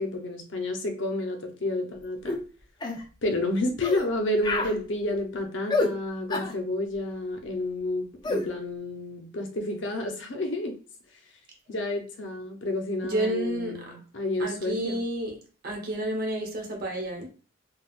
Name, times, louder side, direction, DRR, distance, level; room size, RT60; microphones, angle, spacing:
voice 1, 0.0-2.4 3.2-10.8 11.7-15.0, left 1 dB, 70° left, 0.6 m, -30 dB
sound 1, 2.3-2.4 2.8-3.0 3.8-4.1 4.4-4.7 5.7-5.9 6.3-6.5 8.2-8.4, left 2 dB, 20° left, 0.4 m, -27 dB
voice 2, 13.0-14.0 14.4-15.4 15.6-17.3, right 1 dB, 50° right, 1.0 m, -30 dB
3.4 x 2.2 x 2.4 m
head